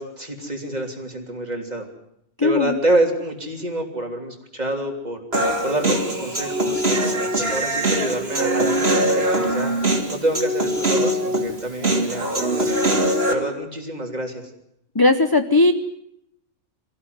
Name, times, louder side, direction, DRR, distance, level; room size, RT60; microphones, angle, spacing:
voice 1, 0.0-1.9 2.4-5.2 5.6-9.7 10.1-12.9 13.3-14.5, right 1 dB, 30° right, 3 dB, 3.3 m, -27 dB
voice 2, 2.4-2.8 14.9-15.7, left 2 dB, 20° left, 8 dB, 0.8 m, -17 dB
Human voice, 5.3-13.3, right 1 dB, 45° right, 3.3 m, -22 dB
24.5 x 15.5 x 9.5 m, 0.76 s
omnidirectional pair, 1.5 m